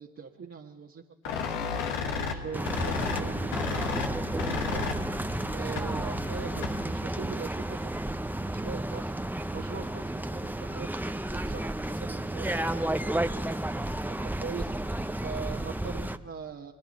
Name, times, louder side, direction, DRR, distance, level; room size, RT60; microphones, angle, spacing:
voice 1, 0.0-4.8 5.5-10.9 11.3-12.8 14.1-14.7 15.2-16.7, right 6 dB, 40° right, -1 dB, 1.6 m, -42 dB
sound 1, 1.2-7.0, left 5 dB, 90° left, 1.5 m, -34 dB
sound 2, 2.5-16.2, right 1 dB, 5° right, 0.8 m, -32 dB
30.0 x 21.0 x 4.3 m, 1.1 s
hypercardioid pair, 55°, 33 cm